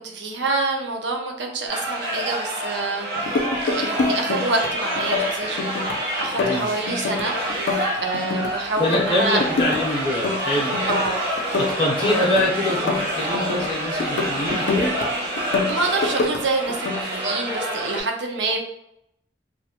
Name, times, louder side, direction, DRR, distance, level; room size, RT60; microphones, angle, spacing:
voice 1, 0.0-9.4 10.9-11.2 11.5-11.8 15.7-18.6, right 3 dB, 85° right, 2 dB, 0.5 m, -27 dB
sound 1, 1.7-18.0, right 1 dB, 65° right, 1.0 m, -27 dB
sound 2, 3.2-4.7 5.0-6.0 6.2-8.5 8.8-9.8 10.1-11.1 11.4-13.7 14.0-15.1 15.4-16.4 16.7-17.0, left 3 dB, 80° left, 0.4 m, -26 dB
voice 2, 6.3-6.7 8.8-10.7 11.6-14.9, left 1 dB, 30° left, -4 dB, 0.5 m, -24 dB
2.5 x 2.1 x 2.8 m, 0.77 s
head